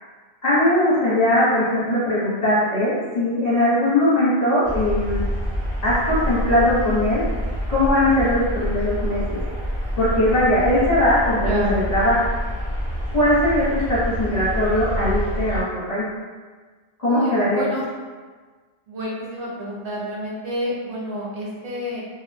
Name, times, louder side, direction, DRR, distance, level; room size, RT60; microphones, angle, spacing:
voice 1, 0.4-5.2 5.8-7.2 7.7-9.4 10.0-12.2 13.1-16.1 17.0-17.7, left 1 dB, 45° left, -11 dB, 0.8 m, -20 dB
sound 1, 4.6-15.6, equal, 40° right, 0.6 m, -27 dB
voice 2, 11.4-11.8 17.1-17.8 18.9-22.0, equal, 65° right, -6 dB, 0.9 m, -29 dB
2.4 x 2.0 x 2.5 m, 1.4 s
omnidirectional pair, 1.0 m